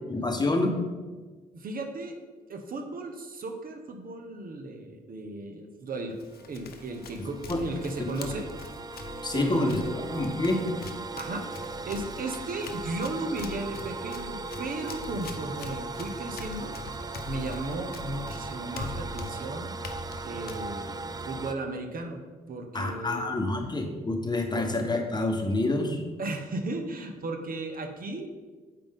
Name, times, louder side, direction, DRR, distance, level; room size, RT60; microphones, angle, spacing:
voice 1, 0.1-0.7 7.5-7.6 9.2-10.7 22.7-26.0, left 2 dB, 20° left, 4 dB, 1.1 m, -27 dB
voice 2, 1.5-2.2 2.5-6.2 6.5-8.5 9.0-10.1 11.2-11.5 11.8-16.7 17.3-19.7 20.2-22.2 22.5-23.3 24.3-24.7 25.0-25.1 26.2-28.3, right 2 dB, 50° right, 5 dB, 0.9 m, -35 dB
Run, 6.1-21.4, left 4 dB, 55° left, 0.8 m, -43 dB
sound 1, 6.3-21.5, right 3 dB, 20° right, 0.5 m, -38 dB
7.7 x 5.1 x 3.6 m, 1.4 s
hypercardioid pair, 50°, 19 cm